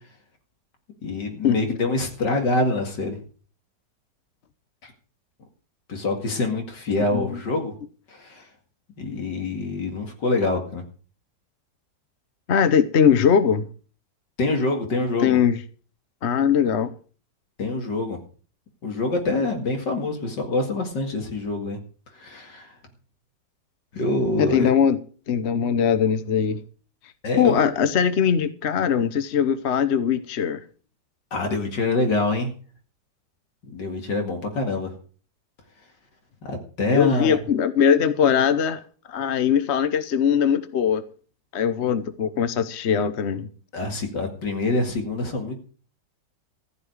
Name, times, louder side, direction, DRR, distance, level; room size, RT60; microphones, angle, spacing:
voice 1, 1.0-3.2 4.8-4.9 5.9-7.7 8.1-8.4 9.0-10.8 14.4-15.4 17.6-18.2 18.8-21.8 22.2-22.7 23.9-24.7 27.2-27.7 31.3-32.5 33.7-34.9 36.4-37.4 43.7-45.6, left 2 dB, 80° left, 3 dB, 2.8 m, -25 dB
voice 2, 12.5-13.6 15.2-15.6 16.2-16.9 24.4-25.0 25.3-26.6 27.4-30.6 36.9-38.8 39.1-41.0 41.5-43.5, left 7 dB, 50° left, 12 dB, 0.9 m, -21 dB
15.0 x 5.7 x 9.6 m, 0.40 s
omnidirectional pair, 1.9 m